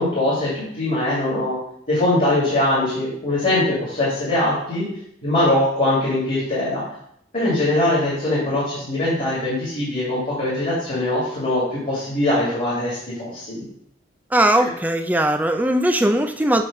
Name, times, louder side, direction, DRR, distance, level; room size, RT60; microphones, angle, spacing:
voice 1, 0.0-1.6 1.9-4.9 5.2-6.8 7.3-13.6 14.6-14.7, left 1 dB, 40° left, -8 dB, 2.2 m, -22 dB
voice 2, 14.3-16.6, right 1 dB, 10° right, 6 dB, 0.4 m, -19 dB
7.6 x 3.2 x 5.2 m, 0.72 s
head